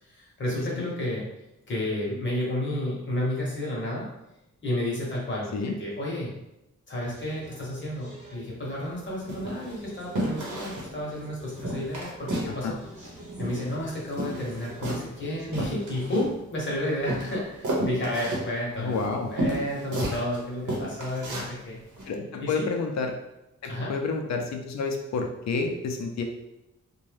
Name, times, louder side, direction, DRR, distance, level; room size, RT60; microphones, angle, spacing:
voice 1, 0.0-1.3 1.7-4.1 4.6-5.5 5.8-6.3 6.9-12.8 13.4-19.0 19.3-21.8 22.4-22.7 23.7-23.9, left 1 dB, 40° left, -4 dB, 0.9 m, -31 dB
sound 1, 7.0-16.1, right 1 dB, 20° right, 0.9 m, -48 dB
sound 2, 8.7-8.9 9.3-9.8 10.1-10.9 11.2-11.3 11.6-12.6 12.8-13.8 14.1-16.6 17.1-20.4 20.7-21.5 22.0-22.1, right 1 dB, 90° right, 0.8 m, -32 dB
voice 2, 18.8-19.3 22.1-23.1 23.6-26.2, left 4 dB, 65° left, 3 dB, 0.5 m, -29 dB
2.6 x 2.2 x 3.2 m, 0.92 s
wide cardioid pair, 170°, 30 cm